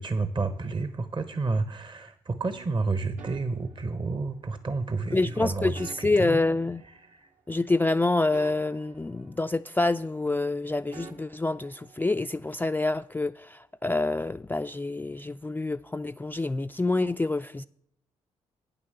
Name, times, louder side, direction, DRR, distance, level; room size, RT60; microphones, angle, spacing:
voice 1, 0.0-6.4 7.1-7.3, right 3 dB, 35° right, 0.9 m, -30 dB
sound 1, 2.5-4.5 5.1-7.4 7.7-10.0 10.3-12.3, right 4 dB, 65° right, 1.3 m, -50 dB
voice 2, 5.1-6.8 7.5-17.7, left 2 dB, 15° left, 0.3 m, -27 dB
9.0 x 6.7 x 6.6 m
hypercardioid pair, 45°, 14 cm